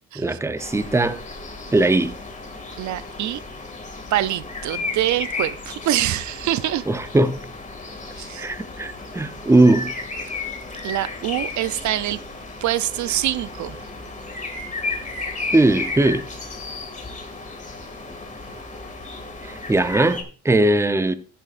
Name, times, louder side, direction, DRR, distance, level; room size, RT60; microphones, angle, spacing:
voice 1, 0.2-1.2 1.7-2.2 6.9-7.4 8.4-9.9 15.5-16.2 19.4-21.1, right 2 dB, 10° right, 0.7 m, -19 dB
sound 1, 0.6-20.2, left 3 dB, 25° left, 2.2 m, -34 dB
voice 2, 2.8-3.4 4.1-6.8 8.2-8.5 10.8-12.2 12.6-13.8, right 13 dB, 70° right, 0.5 m, -25 dB
13.0 x 10.0 x 2.5 m
cardioid pair, 90°, 30 cm